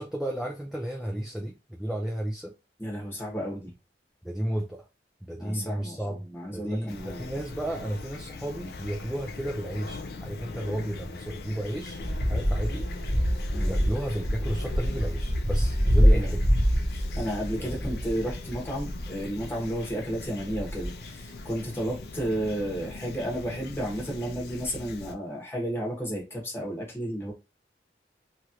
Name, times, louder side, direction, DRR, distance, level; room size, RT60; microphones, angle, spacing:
voice 1, 0.0-2.5 4.2-4.8 5.3-6.3 6.5-12.0 12.3-16.4 17.6-17.8, right 1 dB, ahead, 0.3 m, -33 dB
voice 2, 2.8-3.7 5.4-7.3 13.5-13.8 16.0-16.4 16.9-27.3, equal, 15° left, 0.9 m, -32 dB
Fowl / Chirp tweet, 6.9-25.1, left 3 dB, 65° left, 0.4 m, -41 dB
sound 1, 12.0-19.8 20.1-20.9 21.6-21.7 21.9-22.0, equal, 35° right, 0.8 m, -25 dB
3.0 x 2.4 x 2.8 m
head